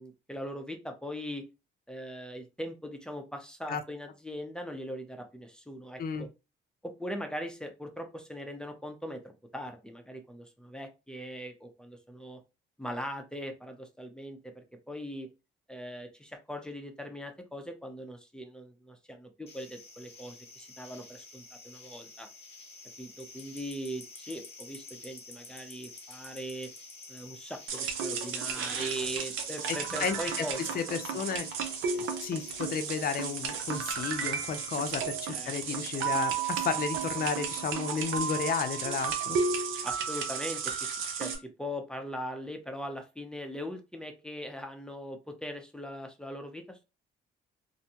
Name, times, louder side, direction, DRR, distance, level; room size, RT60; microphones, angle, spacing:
voice 1, 0.0-1.5 1.9-6.3 6.8-12.4 12.8-15.3 15.7-22.3 23.0-26.7 27.1-30.8 35.3-35.5 39.8-46.9, equal, 5° left, 0.6 m, -40 dB
voice 2, 6.0-6.3 29.7-30.4 30.7-31.5 31.9-39.4, left 6 dB, 50° left, 0.5 m, -33 dB
sound 1, 19.5-35.0, left 3 dB, 30° left, 1.0 m, -50 dB
sound 2, 27.7-41.4, right 6 dB, 85° right, 0.6 m, -33 dB
2.6 x 2.1 x 2.8 m
cardioid pair, 90°, 20 cm